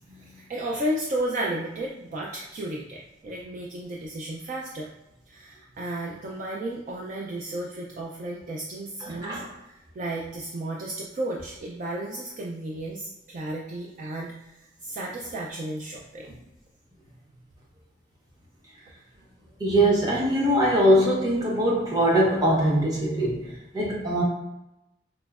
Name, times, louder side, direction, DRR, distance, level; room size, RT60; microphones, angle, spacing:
voice 1, 0.2-4.9 5.3-16.3, right 1 dB, 45° right, -2 dB, 0.3 m, -33 dB
voice 2, 9.0-9.4 16.3-16.4 19.6-24.2, right 1 dB, 20° right, -4 dB, 0.7 m, -22 dB
4.2 x 2.0 x 2.3 m, 0.91 s
head